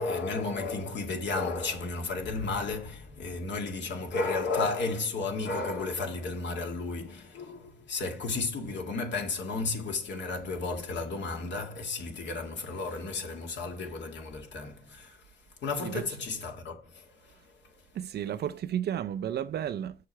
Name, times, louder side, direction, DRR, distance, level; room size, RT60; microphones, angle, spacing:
voice 1, 0.0-15.2 15.6-17.3 17.6-17.8, left 3 dB, 65° left, 2.2 m, -33 dB
voice 2, 18.0-19.9, right 10 dB, 55° right, 0.4 m, -32 dB
6.6 x 5.7 x 4.4 m
cardioid pair, 90°, 20 cm